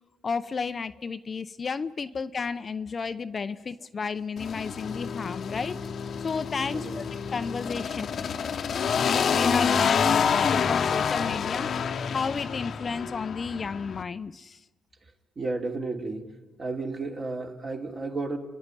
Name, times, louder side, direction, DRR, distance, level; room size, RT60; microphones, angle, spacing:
voice 1, 0.2-5.8 6.2-8.1 9.1-11.7 12.1-14.6, left 5 dB, 40° left, 11 dB, 0.6 m, -32 dB
sound 1, 4.4-14.0, left 6 dB, 55° left, 1.0 m, -28 dB
voice 2, 6.7-7.1 15.4-16.3 16.6-18.4, right 3 dB, 40° right, 1 dB, 3.0 m, -33 dB
30.0 x 11.0 x 9.8 m, 1.2 s
cardioid pair, 90°, 0 cm